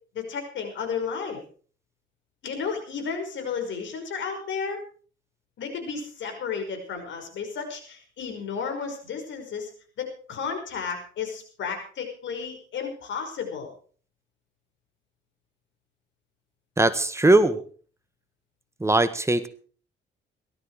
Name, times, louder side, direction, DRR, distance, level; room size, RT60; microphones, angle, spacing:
voice 1, 0.1-1.4 2.4-4.8 5.6-9.7 10.0-13.7, left 6 dB, 70° left, 5 dB, 5.5 m, -33 dB
voice 2, 16.8-17.6 18.8-19.5, right 2 dB, 15° right, 11 dB, 1.6 m, -20 dB
18.0 x 13.0 x 4.9 m, 0.43 s
cardioid pair, 90°, 20 cm